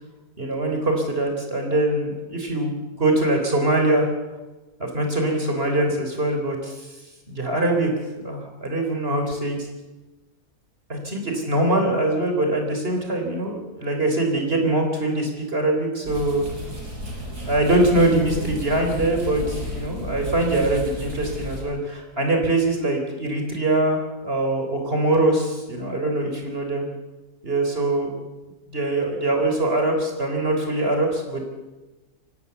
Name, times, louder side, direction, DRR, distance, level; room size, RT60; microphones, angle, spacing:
voice 1, 0.4-4.1 4.8-6.9 7.3-7.9 8.2-9.6 10.9-16.4 17.5-26.8 27.4-28.1 28.7-31.4, right 2 dB, 40° right, 3 dB, 4.0 m, -23 dB
sound 1, 16.0-21.6, left 1 dB, 90° right, 6.5 m, -33 dB
23.5 x 18.0 x 7.1 m, 1.1 s
omnidirectional pair, 1.6 m